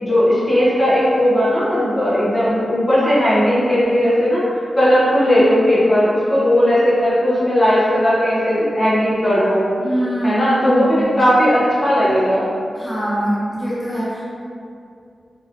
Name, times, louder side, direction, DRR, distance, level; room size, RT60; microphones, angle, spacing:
voice 1, 0.0-4.4 4.7-9.6 10.2-12.5, equal, 25° left, -10 dB, 0.9 m, -16 dB
voice 2, 9.8-10.4 10.7-11.2 12.8-14.2, right 1 dB, 5° right, -11 dB, 0.9 m, -23 dB
4.0 x 2.9 x 2.6 m, 2.5 s
wide cardioid pair, 145°, 0 cm